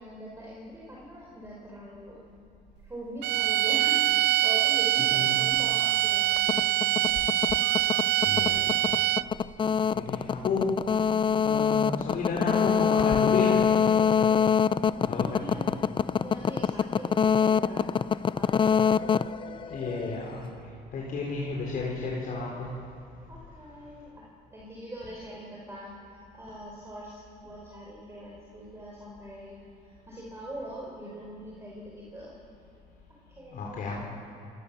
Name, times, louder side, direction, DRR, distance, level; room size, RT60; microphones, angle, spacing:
voice 1, 0.0-2.2 2.8-6.8 9.9-10.5 14.9-15.8 16.2-17.9 18.3-19.0 19.4-20.1 23.3-32.4 33.1-33.8, right 1 dB, 15° right, -4 dB, 4.9 m, -43 dB
sound 1, 3.2-9.4, right 15 dB, 75° right, 0.5 m, -24 dB
sound 2, 6.4-20.2, left 7 dB, 30° left, 0.5 m, -25 dB
voice 2, 8.2-8.7 9.9-10.8 11.4-13.6 14.1-14.2 15.1-15.5 19.7-20.5 20.9-22.7 33.5-34.0, left 4 dB, 55° left, -3 dB, 4.7 m, -32 dB
28.0 x 19.0 x 7.1 m, 2.7 s
cardioid pair, 110°, 17 cm